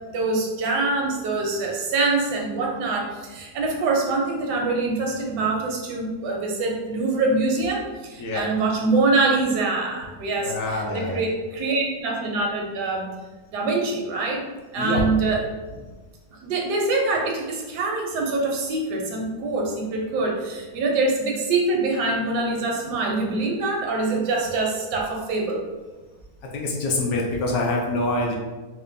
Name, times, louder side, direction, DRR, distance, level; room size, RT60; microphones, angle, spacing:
voice 1, 0.1-13.1 13.5-14.4 14.7-15.4 16.4-25.6, right 3 dB, 85° right, 0 dB, 1.3 m, -24 dB
voice 2, 10.4-11.2 14.8-15.0 26.5-28.4, left 2 dB, 70° left, -1 dB, 1.0 m, -25 dB
4.3 x 2.2 x 2.5 m, 1.3 s
omnidirectional pair, 1.7 m